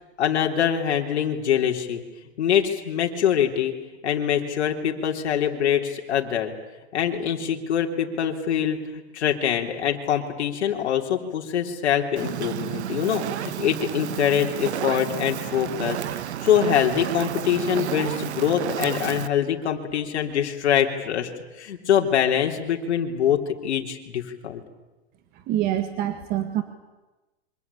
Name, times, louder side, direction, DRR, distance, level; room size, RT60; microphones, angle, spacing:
voice 1, 0.2-2.0 2.4-3.7 4.0-6.5 6.9-16.0 16.4-21.3 21.6-24.6, left 9 dB, 85° left, 3 dB, 3.6 m, -24 dB
Fire, 12.2-19.3, right 11 dB, 80° right, 1.4 m, -31 dB
voice 2, 25.5-26.6, right 12 dB, 30° right, 9 dB, 1.7 m, -25 dB
27.5 x 25.0 x 8.5 m, 1.1 s
supercardioid pair, 160°, 33 cm